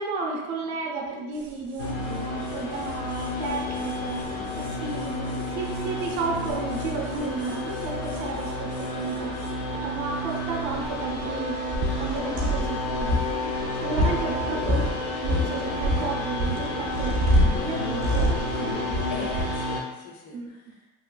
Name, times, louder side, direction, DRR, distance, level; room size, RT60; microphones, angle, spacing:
voice 1, 0.0-9.4 9.8-11.6 12.0-13.5 13.8-14.9 15.2-19.1 20.3-20.5, right 4 dB, 70° right, 0 dB, 0.7 m, -33 dB
sound 1, 0.6-9.3, right 1 dB, 90° left, 1.1 m, -48 dB
sound 2, 1.4-1.5 1.8-1.9 2.2-2.3 2.4-9.5 10.3-10.4 10.6-14.9 15.2-19.6, equal, 30° right, 0.4 m, -28 dB
sound 3, 1.8-19.8, left 1 dB, 40° left, 0.5 m, -31 dB
voice 2, 19.1-20.9, left 3 dB, 70° left, 0 dB, 0.7 m, -41 dB
3.1 x 2.3 x 2.2 m, 1.1 s
cardioid pair, 155°, 38 cm